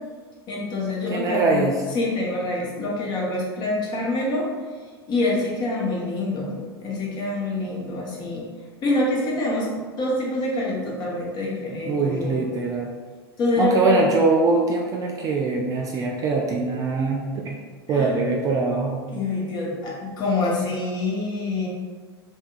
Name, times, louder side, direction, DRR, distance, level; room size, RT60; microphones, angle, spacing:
voice 1, 0.5-1.7 1.9-4.5 5.1-8.4 8.8-9.7 10.0-12.4 13.4-14.0 17.9-18.1 19.1-21.7, left 2 dB, 30° left, -4 dB, 0.9 m, -26 dB
voice 2, 1.1-1.8 11.9-12.9 13.6-17.6 17.9-19.0, right 3 dB, 25° right, -1 dB, 0.3 m, -22 dB
3.3 x 2.9 x 2.3 m, 1.5 s
figure-of-eight pair, 85°, 14 cm